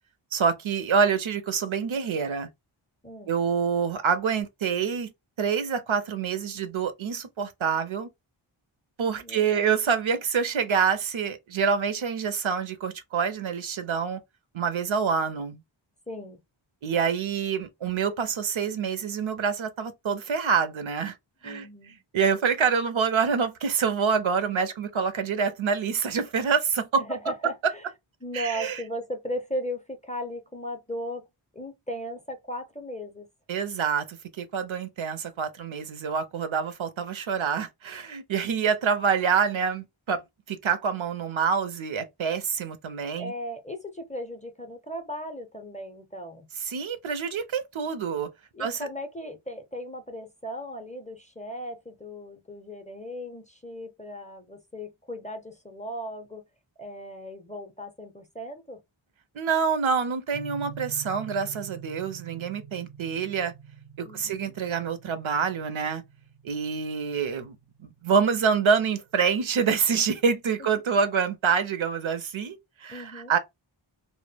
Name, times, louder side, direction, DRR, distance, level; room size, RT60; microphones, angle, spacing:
voice 1, 0.3-2.5 3.3-5.1 5.4-8.1 9.0-14.2 14.5-15.6 16.8-21.1 21.4-21.7 22.1-27.0 28.3-28.8 33.5-40.2 40.5-43.3 46.6-48.3 48.6-48.9 59.3-63.5 64.0-66.0 66.4-73.4, right 6 dB, 70° right, 0.6 m, -26 dB
voice 2, 3.0-3.3 9.2-9.7 16.1-16.4 21.4-22.0 27.0-27.9 28.2-31.3 31.5-33.3 43.2-46.5 48.5-56.4 56.8-58.8 64.0-64.5 70.6-70.7 72.9-73.3, equal, 15° left, 0.4 m, -37 dB
sound 1, 60.3-69.0, right 8 dB, 90° right, 0.9 m, -46 dB
2.1 x 2.0 x 3.2 m
wide cardioid pair, 60°, 50 cm